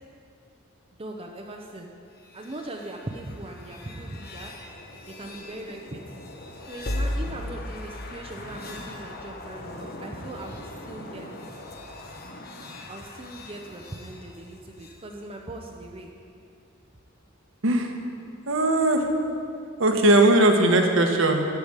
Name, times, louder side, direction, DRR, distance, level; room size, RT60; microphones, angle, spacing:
voice 1, 0.9-1.9 2.3-4.5 5.1-6.0 6.7-11.3 12.9-16.1, right 1 dB, 25° right, 1 dB, 0.7 m, -39 dB
sound 1, 2.2-15.0, left 1 dB, 50° left, 1.1 m, -38 dB
voice 2, 17.6-18.0 18.5-19.1 19.8-21.5, right 1 dB, 65° right, 4 dB, 1.2 m, -19 dB
14.0 x 5.1 x 8.9 m, 2.4 s
head